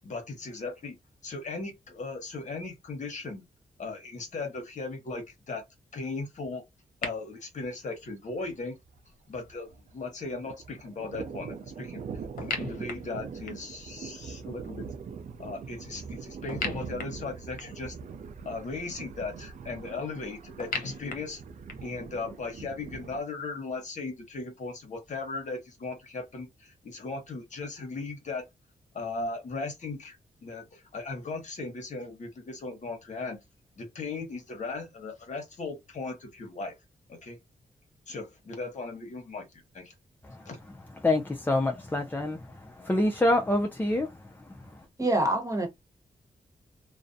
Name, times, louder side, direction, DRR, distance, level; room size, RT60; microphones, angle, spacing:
voice 1, 0.0-0.9 1.2-3.4 3.8-5.6 5.9-6.6 7.0-8.7 9.3-12.0 12.4-14.9 15.4-18.0 18.4-21.4 21.8-28.4 28.9-33.4 33.8-36.7 37.1-37.4 38.1-39.9 40.5-40.6, left 3 dB, 60° left, 1.0 m, -37 dB
sound 1, 7.0-7.1 12.4-13.8 16.5-17.9 20.6-22.0, left 4 dB, 80° left, 0.7 m, -36 dB
Thunder, 7.6-7.8 8.1-8.2 8.4-10.0 10.2-23.2, right 6 dB, 60° right, 0.4 m, -42 dB
voice 2, 41.0-44.1 44.5-44.8, left 1 dB, 15° left, 0.4 m, -27 dB
voice 3, 45.0-45.7, right 1 dB, 25° right, 1.1 m, -25 dB
2.4 x 2.1 x 2.5 m
cardioid pair, 65°, 14 cm